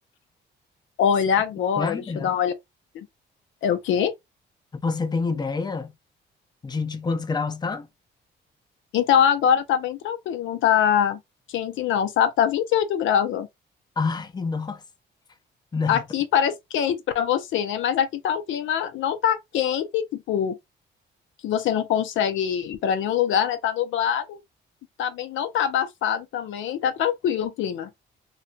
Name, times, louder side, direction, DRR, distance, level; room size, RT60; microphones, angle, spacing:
voice 1, 1.0-2.5 2.9-3.1 3.6-4.1 8.9-11.2 11.5-13.5 15.9-20.6 21.4-24.4 25.0-27.9, left 9 dB, 75° left, 0.5 m, -23 dB
voice 2, 1.8-2.3 4.7-5.9 6.6-7.9 14.0-14.8 15.7-16.0, left 4 dB, 20° left, 0.6 m, -27 dB
2.4 x 2.2 x 3.8 m
cardioid pair, 90°, 20 cm